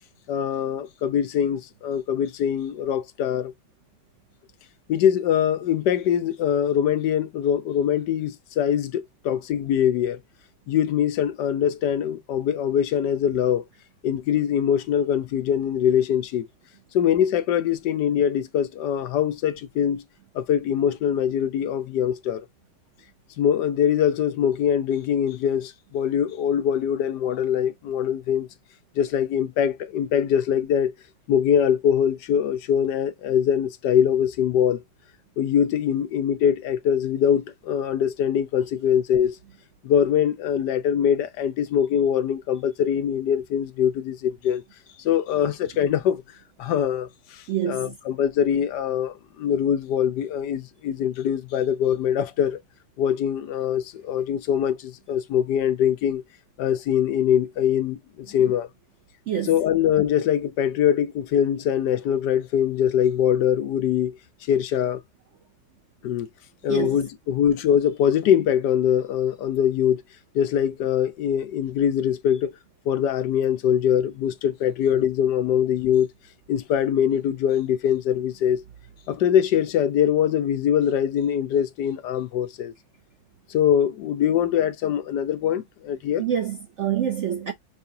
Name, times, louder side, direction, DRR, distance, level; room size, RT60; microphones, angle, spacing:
voice 1, 0.3-3.5 4.9-10.2 10.7-13.6 14.0-16.5 16.9-20.0 20.3-22.5 23.4-28.5 29.0-30.9 31.3-34.8 35.4-39.4 39.8-44.6 45.0-46.2 46.6-52.6 53.0-56.2 56.6-58.7 59.5-64.2 64.5-65.0 66.0-66.3 66.6-70.0 70.3-72.5 72.9-76.1 76.5-78.6 79.1-82.7 83.5-86.2, left 9 dB, 70° left, 1.2 m, -23 dB
voice 2, 47.5-48.0 59.3-59.6 66.7-67.0 86.2-87.5, right 9 dB, 65° right, 0.7 m, -26 dB
5.8 x 2.4 x 2.7 m
omnidirectional pair, 2.0 m